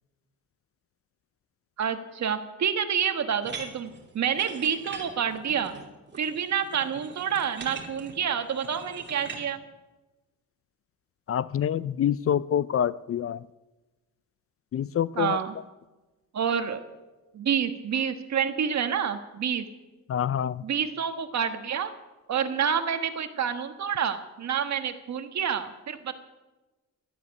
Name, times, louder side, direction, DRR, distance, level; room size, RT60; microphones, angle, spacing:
voice 1, 1.8-5.8 6.2-9.6 15.1-15.6 16.3-16.9 17.3-19.7 20.6-21.9 22.3-26.1, right 7 dB, 55° right, 8 dB, 1.5 m, -28 dB
sound 1, 3.4-9.4, right 4 dB, 35° right, 2.8 m, -42 dB
voice 2, 11.3-13.4 14.7-15.4 20.1-20.6, left 9 dB, 45° left, 18 dB, 0.4 m, -26 dB
12.5 x 12.0 x 9.7 m, 1.2 s
wide cardioid pair, 150°, 33 cm